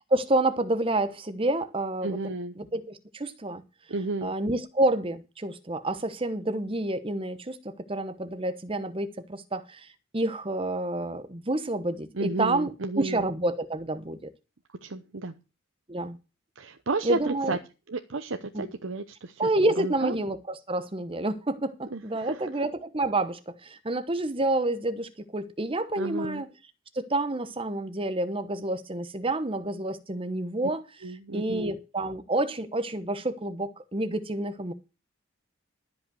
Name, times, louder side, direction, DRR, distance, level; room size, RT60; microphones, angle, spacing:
voice 1, 0.1-2.2 2.6-3.6 4.2-9.9 10.1-14.3 15.9-16.2 17.0-17.6 18.5-18.7 19.4-26.5 26.9-30.8 31.3-34.7, right 2 dB, 25° right, 1.0 m, -29 dB
voice 2, 2.0-2.5 3.9-4.3 12.1-13.2 14.8-15.3 16.6-17.6 17.9-19.5 19.8-20.2 21.9-22.5 26.0-26.4 31.0-31.7, right 3 dB, 70° right, 0.8 m, -32 dB
13.0 x 5.4 x 7.8 m
head